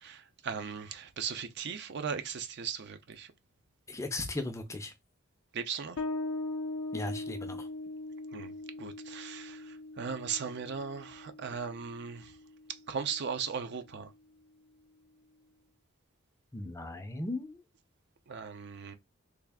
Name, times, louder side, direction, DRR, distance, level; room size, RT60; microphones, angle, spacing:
voice 1, 0.0-3.3 5.5-6.0 8.3-8.5 8.8-12.3 12.9-14.1 18.3-19.0, right 6 dB, 55° right, 0.5 m, -38 dB
voice 2, 3.9-4.9 6.9-7.7 16.5-17.6, left 2 dB, 15° left, 0.5 m, -37 dB
Bass guitar, 6.0-13.1, left 2 dB, 70° left, 0.6 m, -40 dB
3.3 x 2.4 x 3.5 m
head